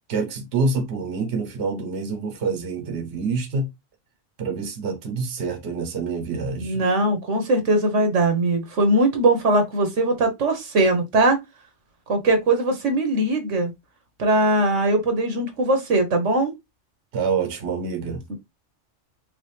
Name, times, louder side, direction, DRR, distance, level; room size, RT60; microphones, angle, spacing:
voice 1, 0.1-3.7 4.4-6.8 17.1-18.2, right 4 dB, 65° right, 1.1 m, -26 dB
voice 2, 6.6-11.4 12.1-13.7 14.2-16.5 18.3-18.4, right 2 dB, 90° right, 1.5 m, -20 dB
4.9 x 2.5 x 3.2 m
omnidirectional pair, 1.2 m